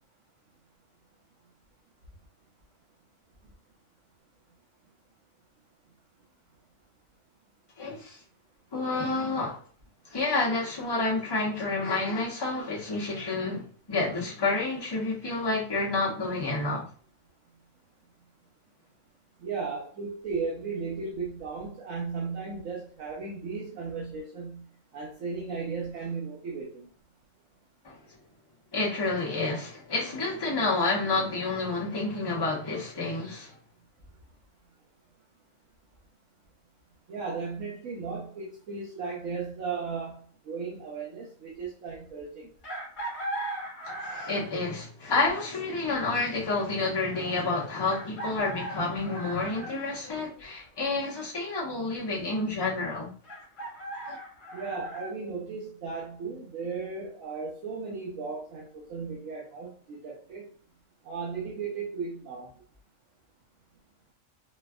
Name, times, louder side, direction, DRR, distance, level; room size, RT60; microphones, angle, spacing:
voice 1, 7.8-8.2 8.7-9.6 10.1-16.9 27.8-28.0 28.7-33.5 43.8-53.1 54.0-54.2, left 3 dB, 20° left, 0.8 m, -29 dB
voice 2, 19.4-24.6 24.9-26.9 37.1-42.5 54.5-60.5 61.0-62.5, right 4 dB, 80° right, 1.2 m, -36 dB
Chicken rooster, 42.6-44.6 46.3-46.4 47.8-49.8 53.2-55.1, right 1 dB, 40° left, 1.1 m, -38 dB
4.3 x 2.2 x 2.3 m
omnidirectional pair, 1.4 m